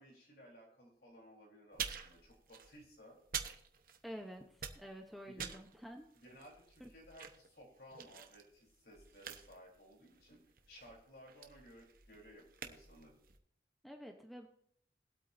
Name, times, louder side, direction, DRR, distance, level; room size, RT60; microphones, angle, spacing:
voice 1, 0.0-3.2 5.4-5.5 6.2-10.4 10.7-13.2, equal, 60° left, -1 dB, 3.8 m, -58 dB
sound 1, 1.7-4.2 4.5-13.4, right 8 dB, 50° right, 1.0 m, -48 dB
voice 2, 4.0-6.0 6.8-6.9 13.8-14.5, equal, ahead, 3 dB, 0.8 m, -49 dB
21.5 x 8.3 x 2.7 m, 0.67 s
head